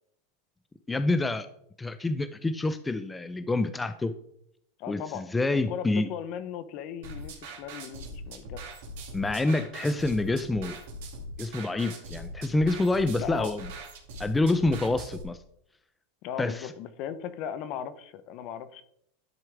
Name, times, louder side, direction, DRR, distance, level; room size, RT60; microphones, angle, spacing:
voice 1, 0.9-1.5 1.8-4.1 4.9-6.1 9.1-10.8 11.4-13.7 14.2-15.4 16.4-16.7, left 2 dB, 10° left, 11 dB, 0.5 m, -27 dB
voice 2, 4.8-5.2 5.5-8.6 13.2-13.5 16.2-18.8, left 9 dB, 50° left, 13 dB, 0.8 m, -37 dB
sound 1, 7.0-15.2, right 1 dB, 70° right, 2.2 m, -41 dB
10.5 x 4.7 x 3.4 m, 0.71 s
supercardioid pair, 120°, 0 cm